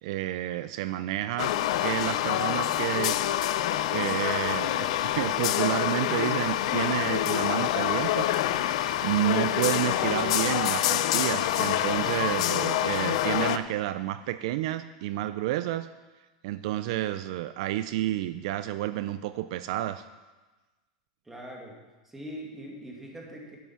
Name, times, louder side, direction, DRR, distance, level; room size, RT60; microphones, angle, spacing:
voice 1, 0.0-1.5 1.8-3.2 3.9-15.9 16.4-20.0, right 14 dB, 65° right, 13 dB, 0.4 m, -30 dB
sound 1, 1.4-13.6, left 12 dB, 70° left, 0.6 m, -26 dB
voice 2, 21.2-21.8 22.0-23.6, equal, 10° right, -1 dB, 2.2 m, -42 dB
12.0 x 8.2 x 5.7 m, 1.2 s
supercardioid pair, 150°, 4 cm